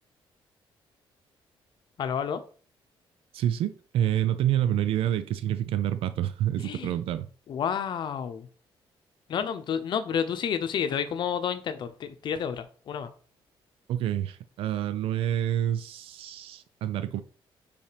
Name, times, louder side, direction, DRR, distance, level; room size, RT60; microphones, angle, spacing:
voice 1, 2.0-2.4 6.6-7.0 7.5-8.5 9.3-13.1, left 7 dB, 55° left, 10 dB, 0.8 m, -30 dB
voice 2, 3.3-7.3 13.9-17.2, right 11 dB, 90° right, 12 dB, 0.4 m, -28 dB
5.5 x 4.3 x 5.1 m, 0.42 s
cardioid pair, 150°, 9 cm